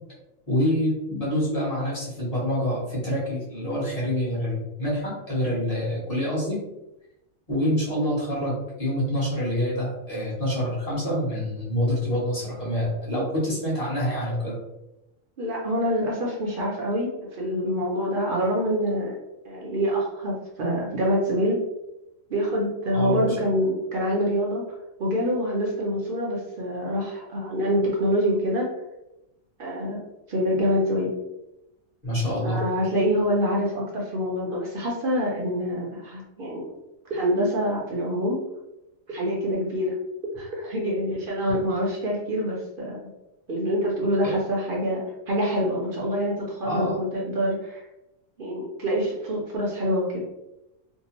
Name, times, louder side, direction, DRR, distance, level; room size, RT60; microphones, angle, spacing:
voice 1, 0.5-6.6 7.5-14.6 22.9-23.2 32.0-32.6 46.6-47.0, equal, 30° left, -7 dB, 1.0 m, -26 dB
voice 2, 15.4-19.1 19.4-21.6 22.3-24.7 25.0-28.7 29.6-30.0 30.3-31.1 32.4-36.6 37.1-38.4 39.1-39.9 40.4-43.0 43.5-47.8 48.4-50.4, equal, 55° right, -3 dB, 0.7 m, -26 dB
2.7 x 2.0 x 2.9 m, 0.90 s
omnidirectional pair, 1.4 m